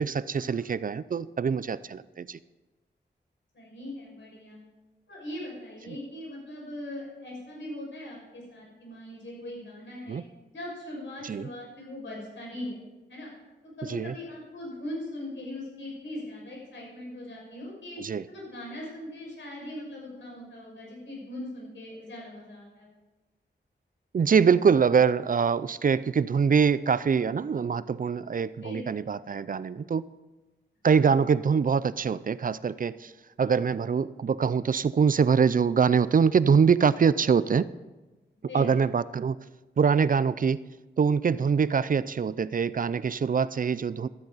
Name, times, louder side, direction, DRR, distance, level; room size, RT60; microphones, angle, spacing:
voice 1, 0.0-2.4 5.9-6.0 10.1-10.2 11.2-11.5 13.9-14.1 18.0-18.2 24.1-30.1 30.8-33.1 33.4-37.7 38.5-39.4 39.8-40.6 41.0-44.1, right 6 dB, 45° right, 16 dB, 0.4 m, -24 dB
voice 2, 3.5-4.6 5.1-10.2 10.5-12.8 13.1-13.3 13.6-22.9 28.6-28.9 30.8-31.0 38.5-38.7, left 1 dB, 85° left, -3 dB, 5.9 m, -40 dB
15.5 x 13.0 x 4.0 m, 1.2 s
wide cardioid pair, 80°, 19 cm